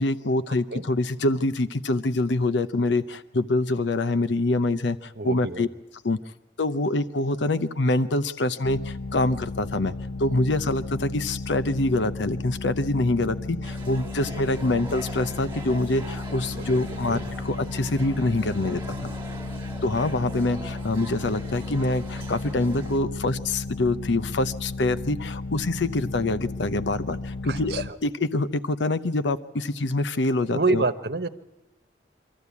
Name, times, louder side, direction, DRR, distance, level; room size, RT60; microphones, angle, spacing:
voice 1, 0.0-5.7 6.0-6.2 6.6-9.9 10.2-19.0 19.8-30.8, left 2 dB, 90° left, 13 dB, 0.7 m, -25 dB
voice 2, 5.2-5.7 17.1-17.2 27.5-27.8 30.5-31.3, right 3 dB, 65° right, 9 dB, 1.1 m, -27 dB
sound 1, 8.6-27.9, left 3 dB, 55° left, 0.8 m, -34 dB
sound 2, 13.6-23.0, right 1 dB, 15° right, 2.3 m, -42 dB
24.5 x 14.0 x 8.3 m, 1.0 s
head